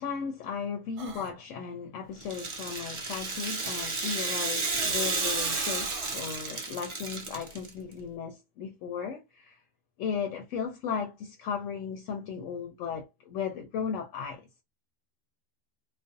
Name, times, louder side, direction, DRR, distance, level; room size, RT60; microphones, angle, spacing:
voice 1, 0.0-9.6 10.0-14.4, left 6 dB, 80° left, 0.9 m, -36 dB
sound 1, 1.0-1.3 4.5-6.2, right 4 dB, 65° right, 0.9 m, -42 dB
Rattle (instrument), 2.2-7.7, right 3 dB, 40° right, 0.5 m, -32 dB
2.4 x 2.1 x 2.5 m
omnidirectional pair, 1.3 m